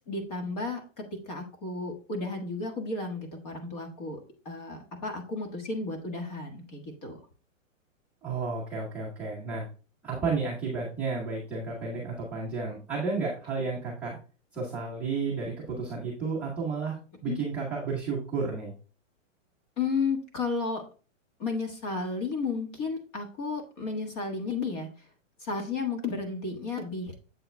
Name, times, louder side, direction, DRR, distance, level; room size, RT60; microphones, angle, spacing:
voice 1, 0.0-4.2 4.4-7.2 17.2-17.4 19.8-20.8 21.4-24.9 25.4-27.1, left 4 dB, 30° left, 3 dB, 1.5 m, -33 dB
voice 2, 8.2-9.7 10.0-14.2 14.5-18.7, right 4 dB, 5° right, -10 dB, 0.9 m, -32 dB
7.8 x 7.5 x 2.2 m, 0.37 s
hypercardioid pair, 180°, 39 cm